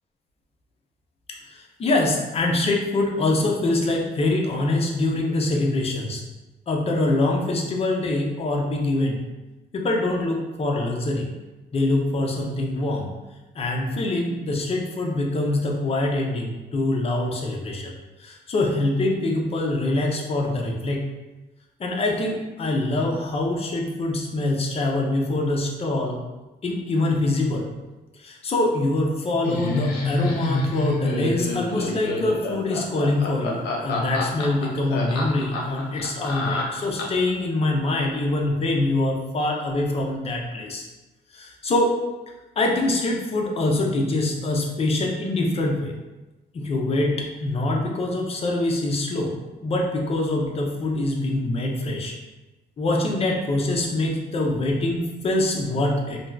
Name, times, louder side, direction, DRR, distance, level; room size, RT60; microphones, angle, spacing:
voice 1, 1.5-6.2 6.7-9.2 9.7-11.3 11.7-13.1 13.5-17.9 18.2-21.1 21.8-26.2 26.6-27.7 28.1-40.9 41.3-41.9 42.6-45.9 46.5-49.3 49.6-52.1 52.8-56.2, left 2 dB, 35° left, 0 dB, 0.5 m, -24 dB
Laughter, 29.4-37.3, left 3 dB, 90° left, 0.6 m, -28 dB
2.6 x 2.2 x 3.2 m, 1.1 s
cardioid pair, 115°, 17 cm